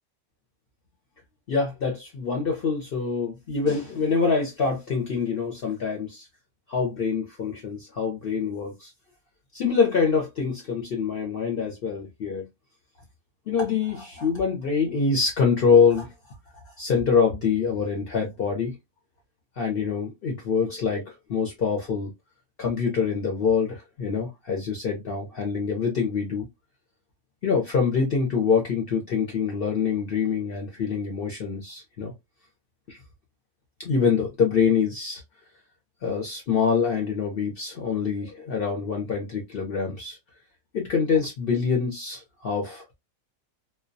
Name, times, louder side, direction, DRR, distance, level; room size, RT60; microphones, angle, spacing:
voice 1, 1.5-6.3 6.7-8.9 9.5-12.5 13.5-16.1 16.8-18.8 19.6-22.1 22.6-26.5 27.4-32.1 32.9-33.0 33.8-35.2 36.0-40.2 40.7-42.9, left 5 dB, 55° left, 0.7 m, -25 dB
2.2 x 2.2 x 2.5 m
omnidirectional pair, 1.4 m